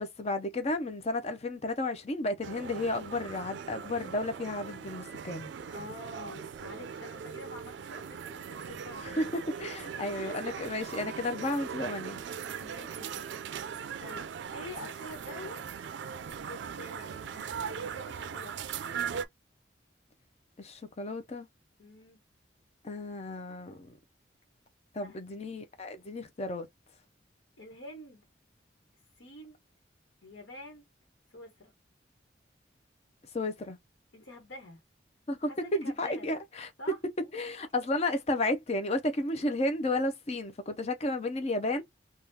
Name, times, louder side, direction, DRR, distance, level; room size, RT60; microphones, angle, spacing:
voice 1, 0.0-5.5 9.0-12.2 20.6-21.5 22.8-23.9 24.9-26.7 33.3-33.8 35.3-36.7 37.3-41.8, left 2 dB, 35° left, 0.5 m, -32 dB
sound 1, 2.4-19.2, right 7 dB, 75° right, 0.3 m, -40 dB
voice 2, 5.7-9.3 10.0-10.5 12.5-13.2 14.0-15.6 16.4-18.5 21.8-22.2 25.0-25.2 27.6-28.2 29.2-29.6 30.2-30.8 31.3-31.7 34.1-34.8 35.4-36.3 36.8-37.0, left 2 dB, 90° left, 1.1 m, -47 dB
3.5 x 2.3 x 2.7 m
head